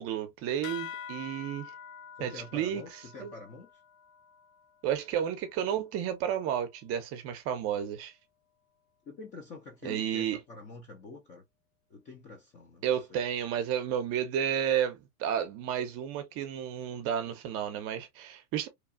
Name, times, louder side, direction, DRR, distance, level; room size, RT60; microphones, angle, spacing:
voice 1, 0.0-1.7 2.2-2.8 3.2-3.3 4.8-8.1 9.8-10.4 12.8-18.7, right 9 dB, 30° right, 0.6 m, -32 dB
sound 1, 0.6-5.6, left 8 dB, 70° left, 0.5 m, -46 dB
voice 2, 2.2-3.7 9.1-11.4 11.9-13.2, left 3 dB, 20° left, 0.4 m, -46 dB
2.9 x 2.3 x 2.3 m
hypercardioid pair, 110°, 45 cm